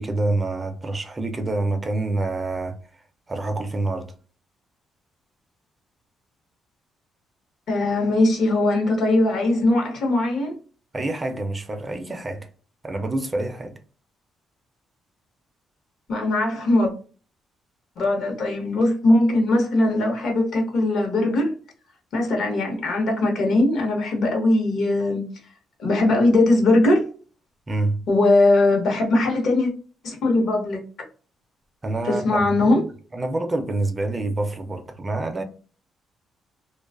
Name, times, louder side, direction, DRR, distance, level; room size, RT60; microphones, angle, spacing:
voice 1, 0.0-2.8 3.3-4.1 10.9-12.5 12.8-13.8 27.7-28.0 31.8-32.9 33.1-35.4, right 2 dB, 25° right, 0.4 m, -27 dB
voice 2, 7.7-10.6 16.1-16.9 18.0-21.5 22.1-25.2 25.8-27.0 28.1-29.7 30.0-30.8 32.0-32.8, left 2 dB, 65° left, 0.9 m, -20 dB
2.4 x 2.2 x 2.3 m
cardioid pair, 115°, 0 cm